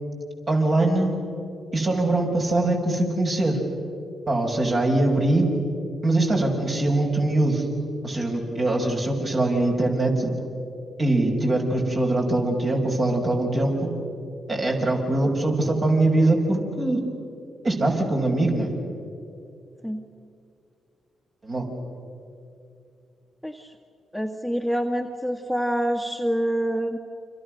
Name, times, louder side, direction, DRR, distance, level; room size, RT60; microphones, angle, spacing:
voice 1, 0.5-1.1 1.7-3.6 4.3-5.5 6.0-7.7 8.0-10.3 11.0-13.9 14.5-17.0 17.6-18.8 21.4-21.7, right 2 dB, 45° right, 0 dB, 6.7 m, -22 dB
voice 2, 23.4-23.7 24.1-27.0, equal, ahead, 5 dB, 1.8 m, -26 dB
30.0 x 26.0 x 6.7 m, 2.5 s
hypercardioid pair, 40°, 0 cm